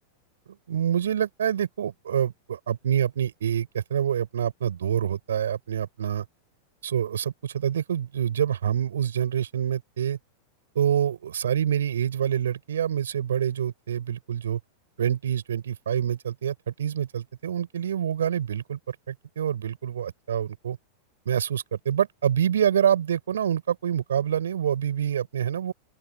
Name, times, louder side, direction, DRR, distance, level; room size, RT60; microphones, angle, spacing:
voice 1, 0.7-6.2 6.8-10.2 10.7-14.6 15.0-20.8 21.3-25.7, right 9 dB, 65° right, 5.8 m, -26 dB
open air
figure-of-eight pair, 90°, 0 cm